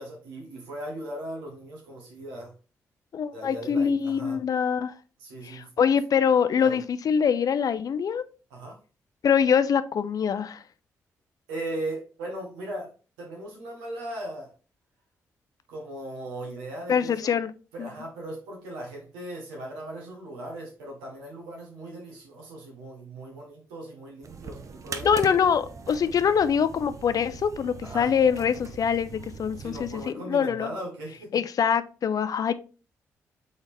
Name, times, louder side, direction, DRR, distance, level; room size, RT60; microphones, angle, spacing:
voice 1, 0.0-2.5 3.3-4.4 5.2-5.7 6.6-6.8 8.5-8.8 11.5-12.9 13.2-14.5 15.7-17.4 17.7-25.4 27.8-28.1 29.5-31.4, right 1 dB, 85° right, 1.4 m, -38 dB
voice 2, 3.1-4.9 5.4-8.2 9.2-10.6 16.9-17.5 17.8-17.9 25.0-30.7 31.3-32.5, left 7 dB, 55° left, 0.4 m, -24 dB
sound 1, 24.2-30.1, right 5 dB, 45° right, 0.6 m, -41 dB
4.0 x 4.0 x 3.3 m
hypercardioid pair, 40°, 8 cm